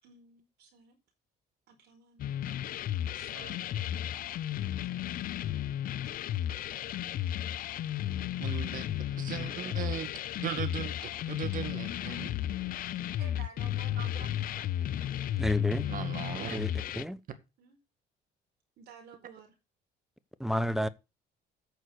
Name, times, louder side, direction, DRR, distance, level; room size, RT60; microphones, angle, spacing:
voice 1, 0.0-1.0 1.7-2.7 3.1-3.3 6.2-6.3 13.2-15.5 17.6-17.8 18.8-19.5, right 6 dB, 80° right, 4.7 m, -54 dB
sound 1, 2.2-17.0, left 11 dB, 60° left, 0.5 m, -34 dB
voice 2, 8.4-8.9 9.2-10.1 10.4-12.3 14.0-14.1 14.6-14.7 15.9-16.6, right 9 dB, 55° right, 2.0 m, -38 dB
voice 3, 15.4-15.9 16.5-17.2 20.4-20.9, equal, ahead, 0.7 m, -31 dB
9.2 x 6.4 x 6.4 m
cardioid pair, 110°, 17 cm